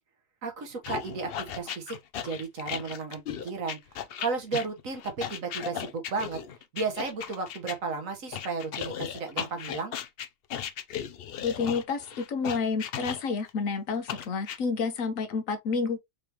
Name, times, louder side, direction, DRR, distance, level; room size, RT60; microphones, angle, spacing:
voice 1, 0.4-2.0 2.2-3.8 4.2-6.4 6.7-10.0, right 4 dB, 80° right, 1.7 m, -33 dB
sound 1, 0.8-7.8 8.3-13.5 14.1-14.6, left 9 dB, 60° left, 0.7 m, -36 dB
voice 2, 11.4-16.0, left 5 dB, 80° left, 1.4 m, -29 dB
4.8 x 3.4 x 2.9 m
omnidirectional pair, 1.4 m